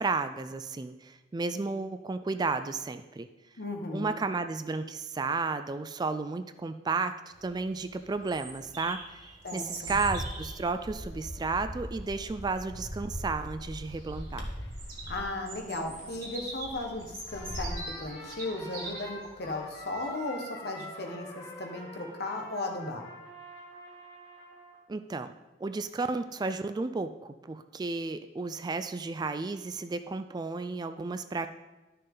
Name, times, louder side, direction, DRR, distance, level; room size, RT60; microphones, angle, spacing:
voice 1, 0.0-3.3 3.9-7.2 7.4-9.2 9.5-14.5 24.9-25.3 25.6-31.5, right 3 dB, 20° right, 10 dB, 0.3 m, -33 dB
voice 2, 3.6-4.2 9.4-9.9 15.1-23.1, left 2 dB, 60° left, 3 dB, 1.4 m, -36 dB
Bird vocalization bird call bird song, 7.3-20.0, right 2 dB, 55° right, 2.7 m, -44 dB
Bird, 9.9-17.9, equal, 80° left, 1.6 m, -40 dB
Trumpet, 17.2-24.8, left 1 dB, 25° left, 2.5 m, -46 dB
12.0 x 6.6 x 3.9 m, 1.1 s
head